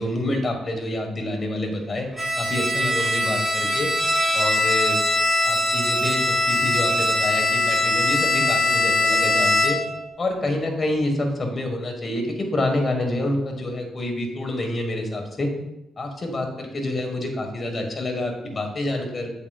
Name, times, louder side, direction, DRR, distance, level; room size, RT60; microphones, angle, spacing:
voice 1, 0.0-2.1 2.4-3.9 4.3-5.0 5.4-9.8 10.2-15.5 16.0-19.3, left 1 dB, 35° left, 3 dB, 1.5 m, -27 dB
Bowed string instrument, 2.2-10.0, left 2 dB, 5° left, 2.0 m, -21 dB
7.9 x 7.1 x 2.4 m, 0.90 s
cardioid pair, 90°, 0 cm